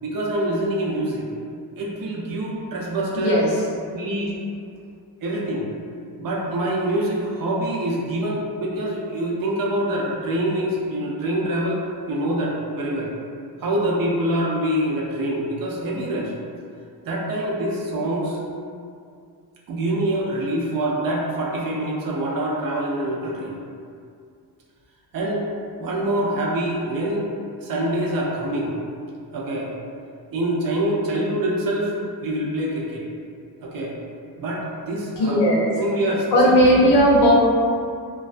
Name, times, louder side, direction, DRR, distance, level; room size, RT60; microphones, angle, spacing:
voice 1, 0.0-1.3 1.8-3.4 3.9-4.3 5.2-5.7 6.2-13.1 13.6-16.3 17.0-18.4 19.7-23.6 25.1-25.5 25.8-27.2 27.6-28.7 29.3-29.7 30.3-33.0 33.6-34.0 34.4-35.4 35.7-36.5, right 1 dB, 55° right, -3 dB, 0.5 m, -25 dB
voice 2, 3.2-3.5 35.2-35.6 36.3-37.3, equal, 80° left, -4 dB, 0.7 m, -16 dB
2.3 x 2.3 x 2.4 m, 2.3 s
wide cardioid pair, 155°, 41 cm